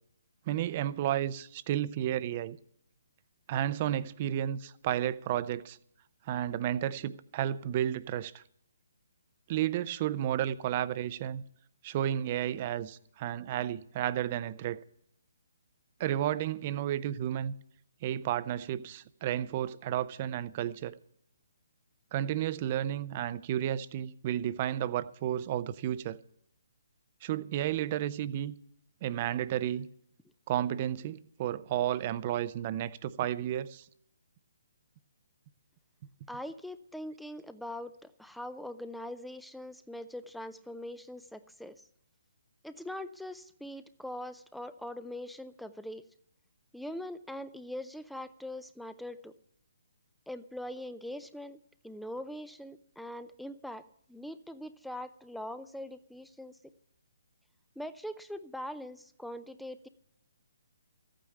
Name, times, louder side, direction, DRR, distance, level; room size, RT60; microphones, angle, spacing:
voice 1, 0.5-2.6 3.5-5.8 6.3-8.4 9.5-11.4 11.8-14.8 16.0-17.5 18.0-20.9 22.1-26.2 27.2-28.5 29.0-29.9 30.5-33.9, right 11 dB, 35° right, 0.7 m, -32 dB
voice 2, 36.3-41.8 42.6-46.0 46.7-49.3 50.3-51.6 51.8-53.8 54.1-56.6 57.8-59.9, left 1 dB, ahead, 0.6 m, -42 dB
14.0 x 9.0 x 8.5 m
figure-of-eight pair, 140°, 0 cm